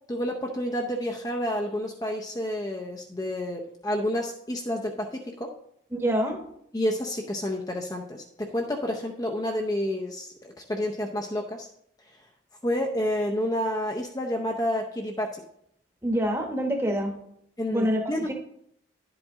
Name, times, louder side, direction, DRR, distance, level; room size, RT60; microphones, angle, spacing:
voice 1, 0.1-5.5 6.7-11.7 12.6-15.4 17.6-18.3, left 1 dB, 20° left, 1 dB, 0.6 m, -29 dB
voice 2, 5.9-6.4 16.0-17.1 17.7-18.0 18.3-18.4, equal, 15° right, 3 dB, 1.0 m, -25 dB
10.5 x 7.9 x 3.6 m, 0.75 s
head